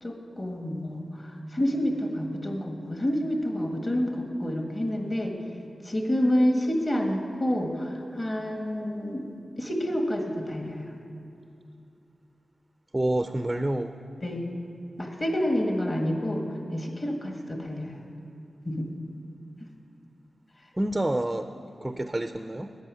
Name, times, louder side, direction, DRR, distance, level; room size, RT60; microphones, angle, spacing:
voice 1, 0.0-5.4 5.8-9.3 9.6-10.9 14.2-14.5 15.0-18.0 18.6-18.9 19.6-19.7, equal, 30° left, 2 dB, 1.7 m, -28 dB
voice 2, 12.9-13.9 20.8-21.5 21.8-22.7, right 1 dB, 10° right, 8 dB, 0.5 m, -28 dB
13.5 x 8.9 x 9.7 m, 2.6 s
wide cardioid pair, 135°, 0 cm